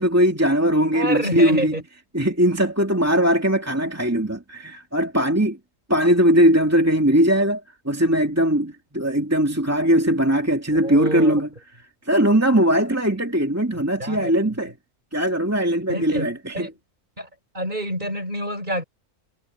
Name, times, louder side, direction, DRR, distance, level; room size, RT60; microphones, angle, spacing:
voice 1, 0.0-1.7 2.1-5.6 5.9-7.6 7.9-11.5 12.1-14.7 15.1-16.7, equal, 10° right, 2.3 m, -20 dB
voice 2, 0.9-1.8 10.8-11.3 14.0-14.3 15.9-16.7 17.2-17.3 17.5-18.8, right 1 dB, 35° right, 5.9 m, -27 dB
omnidirectional pair, 1.3 m